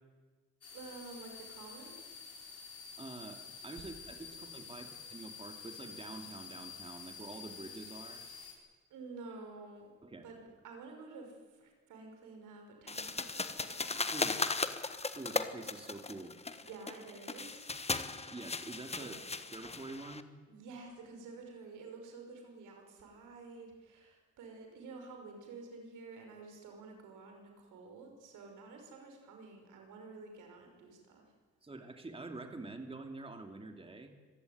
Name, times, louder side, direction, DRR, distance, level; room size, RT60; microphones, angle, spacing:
sound 1, 0.6-8.5, left 5 dB, 50° left, 6.1 m, -49 dB
voice 1, 0.7-2.1 4.3-4.6 8.9-9.9 10.2-14.1 16.6-17.7 19.0-19.3 20.5-31.3, right 3 dB, 85° right, 3 dB, 5.7 m, -50 dB
voice 2, 3.0-8.2 10.0-10.2 14.1-14.4 15.2-16.3 18.3-19.2 19.5-20.3 31.6-34.1, right 2 dB, 20° right, 5 dB, 2.5 m, -46 dB
sound 2, 12.9-20.2, left 3 dB, 20° left, 1.4 m, -37 dB
25.5 x 15.5 x 9.5 m, 1.4 s
cardioid pair, 90°, 30 cm